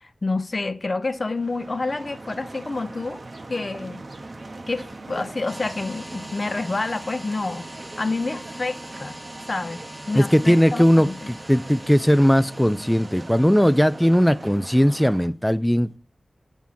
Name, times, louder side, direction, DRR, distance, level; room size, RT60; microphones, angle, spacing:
voice 1, 0.0-3.2 3.5-4.0 4.7-7.6 8.0-9.2 9.5-9.8 10.1-11.3, left 3 dB, 45° left, 0.6 m, -28 dB
sound 1, 1.0-15.3, right 2 dB, 50° right, 0.7 m, -41 dB
sound 2, 5.5-14.8, right 1 dB, 10° right, 1.0 m, -43 dB
voice 2, 10.2-16.0, equal, 5° left, 0.3 m, -18 dB
7.3 x 3.6 x 5.7 m
wide cardioid pair, 70°, 0 cm